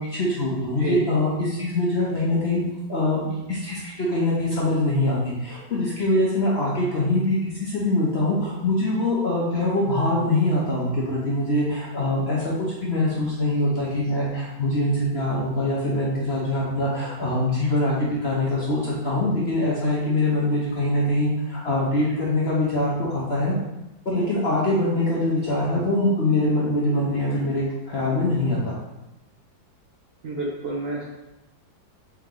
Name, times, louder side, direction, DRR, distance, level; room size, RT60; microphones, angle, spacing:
voice 1, 0.0-2.6 2.9-23.5 24.0-28.8, left 1 dB, 50° left, -5 dB, 0.7 m, -23 dB
voice 2, 30.2-31.1, right 2 dB, 75° right, -3 dB, 0.5 m, -29 dB
4.6 x 3.0 x 3.7 m, 0.94 s
omnidirectional pair, 2.0 m